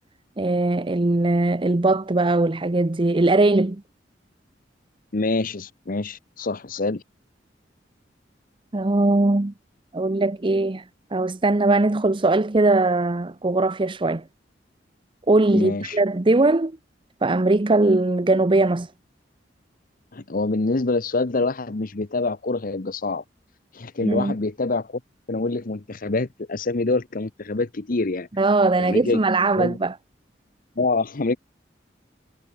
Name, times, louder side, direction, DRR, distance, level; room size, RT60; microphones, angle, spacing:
voice 1, 0.4-3.8 8.7-9.5 9.9-10.8 11.1-14.2 15.3-16.7 17.2-18.9 24.0-24.3 28.4-29.9, right 2 dB, 30° right, 0.7 m, -20 dB
voice 2, 5.1-7.0 15.5-16.0 20.1-23.2 23.7-25.0 25.3-28.3 28.8-29.2 29.6-29.8 30.8-31.4, left 3 dB, 50° left, 0.9 m, -25 dB
head